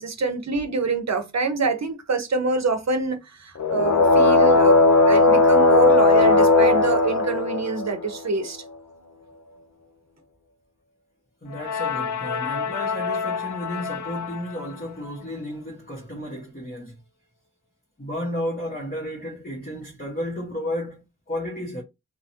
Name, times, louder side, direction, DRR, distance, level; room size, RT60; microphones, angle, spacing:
voice 1, 0.0-8.6, right 4 dB, 65° right, 0.7 m, -26 dB
sound 1, 3.6-8.2 11.5-14.4, left 3 dB, 70° left, 0.6 m, -19 dB
voice 2, 11.4-16.9 18.0-21.8, left 1 dB, 30° left, 1.1 m, -32 dB
3.4 x 2.1 x 2.7 m
wide cardioid pair, 55°, 29 cm